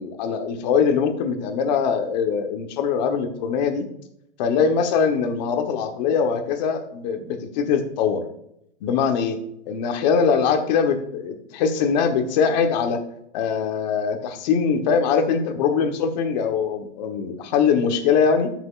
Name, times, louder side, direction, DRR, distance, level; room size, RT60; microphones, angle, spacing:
voice 1, 0.0-3.8 4.4-8.2 8.8-9.4 9.7-13.0 13.3-18.5, left 6 dB, 40° left, 6 dB, 1.1 m, -22 dB
13.5 x 6.1 x 2.4 m, 0.75 s
supercardioid pair, 160°, 36 cm